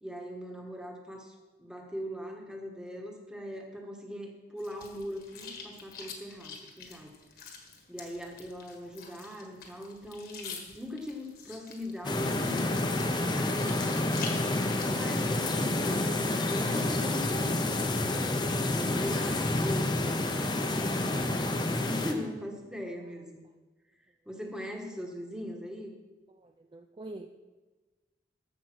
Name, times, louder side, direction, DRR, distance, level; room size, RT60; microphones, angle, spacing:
voice 1, 0.0-7.1 7.9-12.7 13.2-18.4 18.7-20.3 20.6-23.5 24.3-25.9, equal, 5° right, 1 dB, 1.3 m, -40 dB
sound 1, 4.6-16.8, left 5 dB, 55° left, 1.6 m, -47 dB
sound 2, 12.0-22.1, left 2 dB, 25° left, 0.8 m, -29 dB
voice 2, 26.4-27.3, right 2 dB, 25° right, 6 dB, 0.4 m, -45 dB
14.0 x 5.2 x 6.1 m, 1.2 s
head